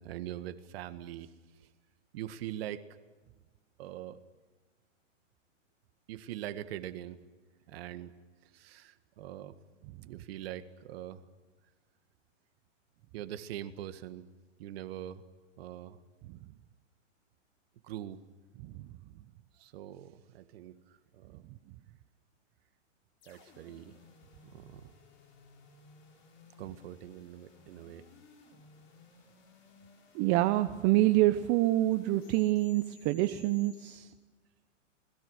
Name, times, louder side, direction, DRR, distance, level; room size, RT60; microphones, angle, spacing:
voice 1, 0.0-1.3 1.6-1.7 2.1-2.9 3.8-4.2 6.1-7.2 7.7-8.1 8.4-9.6 10.0-11.2 13.1-14.3 14.6-15.2 15.6-16.0 17.8-18.2 19.5-21.4 23.2-24.0 24.4-24.9 26.6-28.1, right 12 dB, 50° right, 10 dB, 1.8 m, -43 dB
sound 1, 23.2-34.0, left 4 dB, 30° left, 7.5 m, -58 dB
voice 2, 30.1-34.1, right 16 dB, 30° right, 10 dB, 0.8 m, -26 dB
28.0 x 21.0 x 6.5 m, 1.3 s
hypercardioid pair, 135°, 38 cm